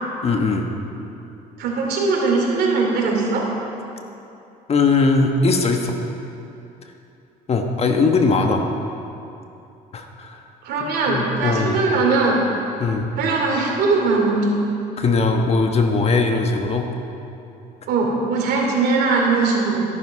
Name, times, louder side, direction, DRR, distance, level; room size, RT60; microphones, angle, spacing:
voice 1, 0.2-0.7 4.7-5.9 7.5-8.6 9.9-10.4 10.8-11.8 12.8-13.1 15.0-16.9, left 3 dB, 35° left, 4 dB, 1.2 m, -20 dB
voice 2, 1.6-3.5 10.6-12.4 13.2-14.5 17.9-19.9, right 3 dB, 75° right, -1 dB, 2.9 m, -20 dB
14.0 x 11.0 x 4.8 m, 2.7 s
cardioid pair, 110°, 17 cm